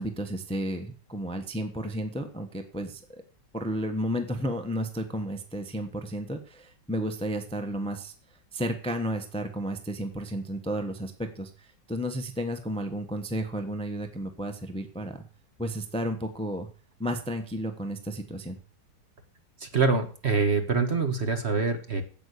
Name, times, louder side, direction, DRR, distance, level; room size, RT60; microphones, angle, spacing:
voice 1, 0.0-3.2 3.5-8.1 8.5-11.5 11.9-15.2 15.6-16.7 17.0-18.6, equal, 5° left, 6 dB, 1.1 m, -32 dB
voice 2, 19.6-22.0, right 4 dB, 40° right, 6 dB, 1.7 m, -25 dB
9.1 x 8.3 x 8.3 m, 0.40 s
omnidirectional pair, 1.8 m